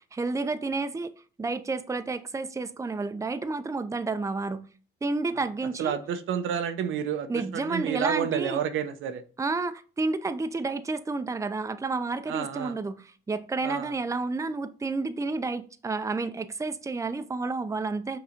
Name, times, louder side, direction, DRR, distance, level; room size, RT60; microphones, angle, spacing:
voice 1, 0.1-4.7 5.0-6.0 7.3-8.6 9.4-18.2, right 3 dB, 15° right, 0.6 m, -30 dB
voice 2, 5.8-9.2 12.3-12.8 13.6-13.9, right 8 dB, 85° right, 0.8 m, -30 dB
6.0 x 4.0 x 5.1 m
cardioid pair, 90°, 20 cm